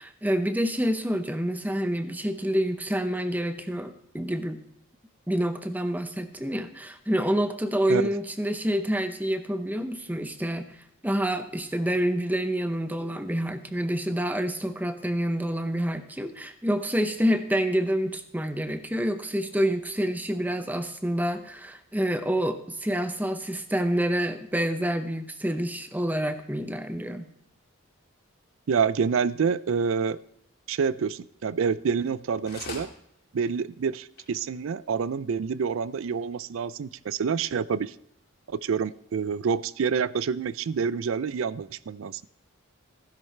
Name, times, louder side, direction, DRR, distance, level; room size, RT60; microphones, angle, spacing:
voice 1, 0.0-4.6 5.3-10.7 11.0-27.3, equal, 10° right, 9 dB, 0.7 m, -27 dB
voice 2, 28.7-30.2 30.7-32.9 33.3-37.9 38.5-42.3, right 6 dB, 70° right, 18 dB, 0.4 m, -27 dB
sound 1, 32.1-32.2 32.5-32.9 33.5-33.6 33.9-34.0 34.1-34.2 34.9-35.0, left 4 dB, 50° left, 2.4 m, -40 dB
15.5 x 10.5 x 3.3 m, 0.75 s
head